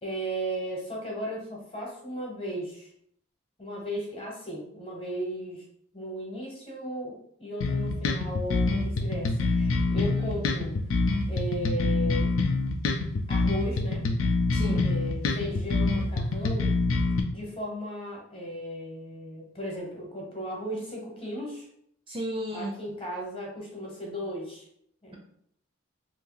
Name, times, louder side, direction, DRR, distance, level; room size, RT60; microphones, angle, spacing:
voice 1, 0.0-2.9 3.6-5.6 5.9-10.7 11.3-12.3 13.3-14.0 14.8-16.7 17.3-21.7 22.5-24.7 25.0-25.1, equal, 25° left, -2 dB, 0.9 m, -36 dB
sound 1, 7.6-17.2, left 3 dB, 85° left, 0.5 m, -26 dB
voice 2, 14.5-15.0 22.1-22.7, right 1 dB, 25° right, 0 dB, 0.4 m, -33 dB
2.8 x 2.7 x 3.8 m, 0.69 s
head